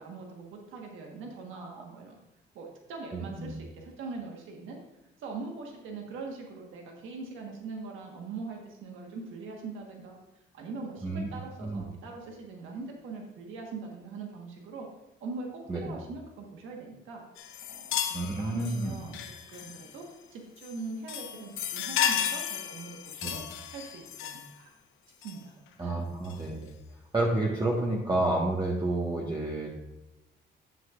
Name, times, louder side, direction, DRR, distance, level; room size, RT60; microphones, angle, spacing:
voice 1, 0.0-2.2 2.5-4.8 5.2-10.2 10.5-14.9 15.2-17.2 17.7-23.4 23.7-24.7 25.2-26.0, right 3 dB, 90° right, 1 dB, 1.4 m, -41 dB
voice 2, 3.1-3.5 11.0-11.3 11.6-11.8 15.7-15.9 18.1-19.0 23.2-23.3 25.8-26.7 27.1-29.7, right 2 dB, 20° right, -4 dB, 1.4 m, -30 dB
sound 1, 17.4-20.0 20.6-20.8 21.1-24.6 25.2-25.4 26.2-26.4, left 9 dB, 85° left, 0.7 m, -34 dB
9.6 x 7.5 x 2.4 m, 0.94 s
cardioid pair, 90°, 20 cm